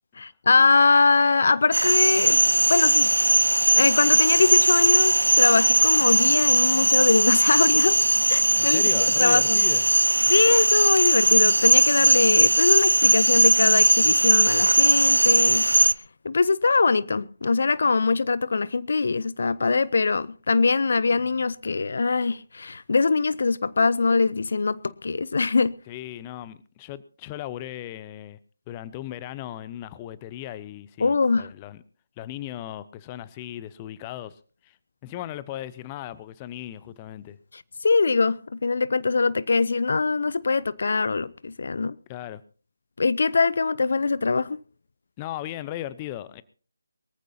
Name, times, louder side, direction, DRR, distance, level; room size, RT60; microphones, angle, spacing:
voice 1, 0.2-2.4 2.7-3.1 3.7-8.0 8.3-8.8 9.2-9.6 10.3-15.7 16.2-25.7 31.0-31.5 37.5-42.0 43.0-44.6, left 4 dB, 55° left, 0.6 m, -22 dB
sound 1, 1.7-15.9, right 1 dB, 85° right, 0.6 m, -19 dB
voice 2, 8.5-9.9 25.9-28.4 28.7-31.8 32.2-34.8 35.0-37.4 42.1-42.4 45.2-46.4, left 13 dB, 20° left, 0.7 m, -37 dB
23.0 x 14.5 x 2.8 m
figure-of-eight pair, 155°, 0 cm